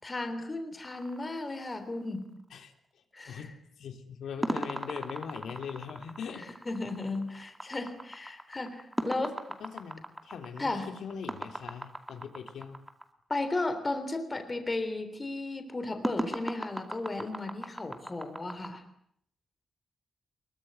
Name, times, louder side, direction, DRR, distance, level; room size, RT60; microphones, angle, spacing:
voice 1, 0.0-2.3 3.1-3.5 6.7-9.4 10.6-10.9 13.3-18.8, left 2 dB, 20° left, 8 dB, 3.5 m, -35 dB
sound 1, 0.8-2.2 4.4-13.0 16.0-18.7, right 1 dB, 5° right, 2.4 m, -38 dB
voice 2, 2.5-6.5 9.2-9.3 9.6-12.8, left 6 dB, 75° left, 6 dB, 3.5 m, -41 dB
25.0 x 23.0 x 9.4 m, 0.67 s
wide cardioid pair, 180°, 0 cm